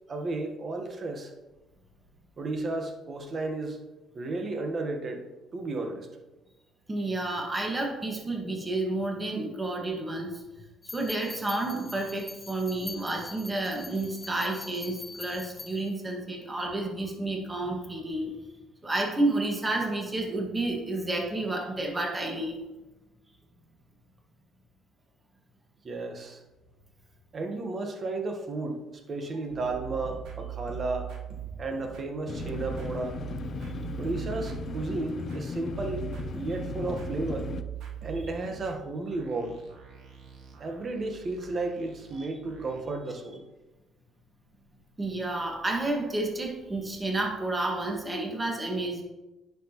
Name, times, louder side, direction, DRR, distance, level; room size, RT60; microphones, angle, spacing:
voice 1, 0.1-1.3 2.4-3.8 4.1-6.1 25.8-26.4 27.3-31.1 31.6-33.2 34.0-36.0 36.3-37.5 38.0-39.6 40.6-43.4, right 2 dB, 40° right, 4 dB, 1.3 m, -33 dB
voice 2, 6.9-10.4 10.9-18.3 18.8-22.5 33.6-33.7 42.2-42.3 45.0-49.0, right 2 dB, 20° right, 0 dB, 1.7 m, -30 dB
sound 1, 10.8-15.9, left 4 dB, 30° left, 1.0 m, -44 dB
sound 2, 29.5-42.8, right 10 dB, 80° right, 1.3 m, -41 dB
sound 3, 32.3-37.6, left 6 dB, 50° left, 0.4 m, -37 dB
9.8 x 5.9 x 3.0 m, 1.1 s
cardioid pair, 100°, 0 cm